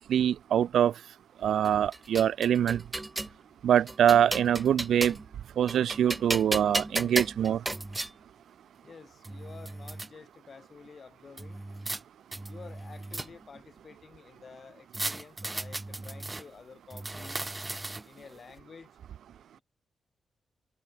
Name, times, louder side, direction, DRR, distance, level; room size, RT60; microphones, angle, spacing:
voice 1, 0.1-0.9 1.4-2.8 3.6-5.2 5.6-7.6, right 9 dB, 90° right, 0.4 m, -24 dB
sound 1, 1.6-3.4 3.9-5.3 5.7-8.1 8.9-9.0 9.2-10.1 11.4-12.0 12.3-13.6 14.9-16.4 16.9-18.2, right 2 dB, 15° right, 0.3 m, -35 dB
voice 2, 8.8-11.6 12.5-17.4 18.0-19.0, left 5 dB, 45° left, 3.9 m, -50 dB
cardioid pair, 115°, 0 cm